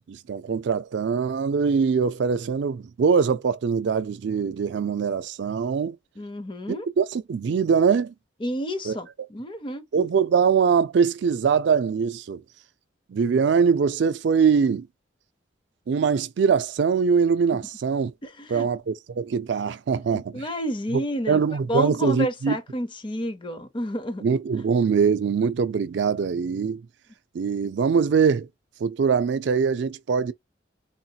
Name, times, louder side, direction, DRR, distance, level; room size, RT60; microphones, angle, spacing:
voice 1, 0.1-6.0 7.0-8.1 8.8-9.0 9.9-12.4 13.1-14.9 15.9-18.1 18.5-20.5 21.3-22.6 24.2-26.8 27.3-28.5 28.8-30.3, right 6 dB, 65° right, 0.4 m, -22 dB
voice 2, 6.2-6.9 8.4-9.8 18.2-18.7 19.9-21.4 21.7-24.2, equal, 25° left, 0.7 m, -30 dB
3.8 x 2.8 x 2.3 m
head